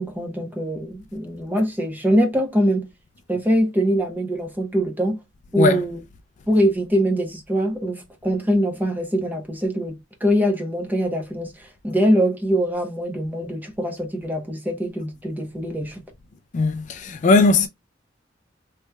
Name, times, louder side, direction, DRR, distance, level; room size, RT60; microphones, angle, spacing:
voice 1, 0.0-2.9 3.3-5.2 5.5-6.0 6.5-16.0, equal, 10° right, 0.8 m, -23 dB
voice 2, 5.5-5.8 16.5-17.7, left 3 dB, 40° left, 0.3 m, -18 dB
3.2 x 3.1 x 2.2 m
head